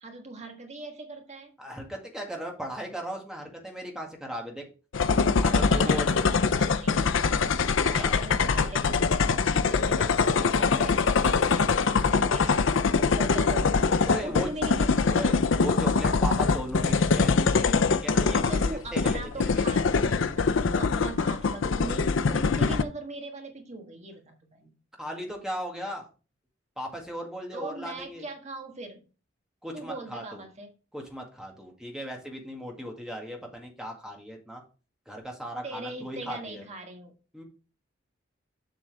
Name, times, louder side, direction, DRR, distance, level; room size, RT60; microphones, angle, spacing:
voice 1, 0.0-1.5 5.5-7.1 7.4-9.2 9.5-12.7 12.9-13.9 14.2-15.2 18.5-24.7 27.5-29.0 29.7-30.7 35.6-37.1, right 2 dB, 35° right, 3 dB, 1.5 m, -40 dB
voice 2, 1.6-4.6 5.4-6.3 8.0-8.2 14.0-14.5 15.1-18.5 18.9-19.7 25.0-26.1 26.8-28.3 29.6-30.4 30.9-34.6 35.1-36.6 37.3-37.4, equal, 5° right, 1 dB, 1.9 m, -37 dB
sound 1, 4.9-22.8, left 4 dB, 75° left, 0.5 m, -23 dB
7.7 x 6.3 x 3.4 m, 0.33 s
head